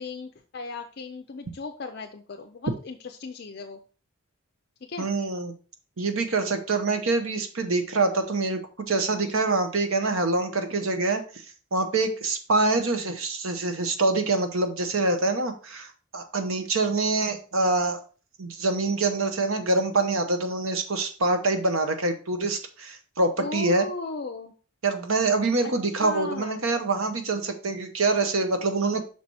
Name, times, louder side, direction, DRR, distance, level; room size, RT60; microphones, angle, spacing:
voice 1, 0.0-3.8 4.9-5.1 9.2-9.4 23.4-24.5 25.6-25.7 26.0-26.6, left 3 dB, 50° left, 5 dB, 0.5 m, -36 dB
voice 2, 5.0-5.5 6.0-11.2 11.7-18.0 18.4-23.9 24.8-29.0, right 3 dB, 75° right, 7 dB, 1.0 m, -25 dB
6.0 x 4.6 x 4.1 m, 0.38 s
head